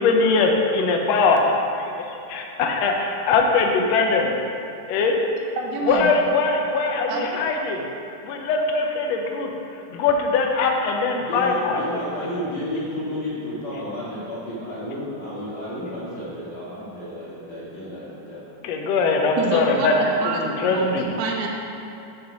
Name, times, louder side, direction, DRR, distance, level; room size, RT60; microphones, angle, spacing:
voice 1, 0.0-1.4 1.8-4.3 4.9-5.2 5.9-7.9 8.2-9.5 9.9-11.8 18.6-19.9 20.2-21.1, left 4 dB, 80° left, 2 dB, 1.6 m, -21 dB
voice 2, 5.6-6.1 7.1-7.4 19.4-21.5, right 4 dB, 80° right, 0 dB, 2.3 m, -27 dB
voice 3, 11.2-18.4 20.6-20.8, equal, 45° left, -10 dB, 1.5 m, -32 dB
6.6 x 3.9 x 5.8 m, 2.8 s
omnidirectional pair, 3.6 m